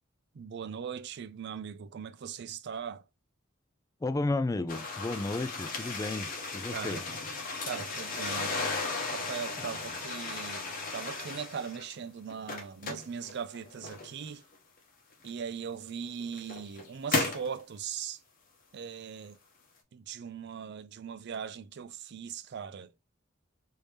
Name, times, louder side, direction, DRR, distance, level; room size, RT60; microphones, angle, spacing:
voice 1, 0.3-3.0 6.7-7.0 7.6-8.5 9.1-14.4 15.2-18.2 18.7-19.4 19.9-22.9, right 7 dB, 55° right, 0.4 m, -39 dB
voice 2, 4.0-7.0 9.6-9.7, left 2 dB, 15° left, 0.3 m, -33 dB
sound 1, 4.7-11.9 12.3-14.3 15.2-15.3 16.1-17.5, left 3 dB, 45° left, 0.9 m, -35 dB
3.3 x 2.7 x 3.2 m
head